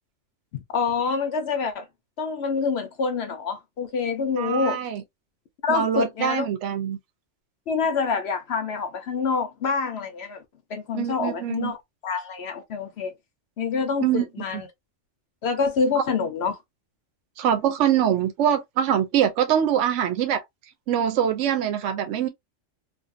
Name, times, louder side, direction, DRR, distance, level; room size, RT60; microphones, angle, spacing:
voice 1, 0.5-1.9 2.2-4.8 5.6-6.5 7.7-10.4 10.7-11.8 12.0-13.1 13.6-14.7 15.4-16.6, left 5 dB, 65° left, 0.8 m, -26 dB
voice 2, 4.4-5.0 5.7-7.0 10.9-11.7 14.0-14.2 14.5-14.6 17.4-20.4 20.9-22.3, right 9 dB, 75° right, 0.9 m, -23 dB
2.6 x 2.4 x 2.5 m
omnidirectional pair, 1.3 m